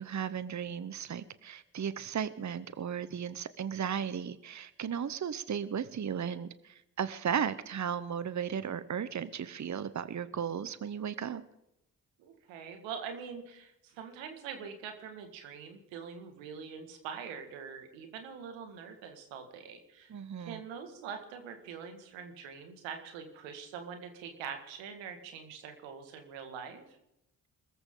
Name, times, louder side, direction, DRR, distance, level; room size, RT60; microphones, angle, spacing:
voice 1, 0.0-11.4 20.1-20.6, right 8 dB, 40° right, 15 dB, 1.0 m, -35 dB
voice 2, 12.2-27.0, right 6 dB, 90° right, 6 dB, 2.1 m, -44 dB
22.5 x 14.0 x 3.9 m, 0.86 s
hypercardioid pair, 45°, 44 cm